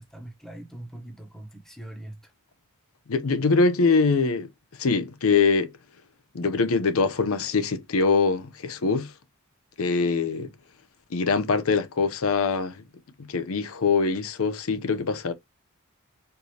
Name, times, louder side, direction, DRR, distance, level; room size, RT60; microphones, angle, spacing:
voice 1, 0.0-2.2, right 1 dB, ahead, 1.0 m, -42 dB
voice 2, 3.1-4.5 4.8-5.7 6.3-9.1 9.8-10.5 11.1-12.8 13.2-15.3, left 4 dB, 80° left, 0.6 m, -23 dB
4.4 x 2.7 x 3.2 m
head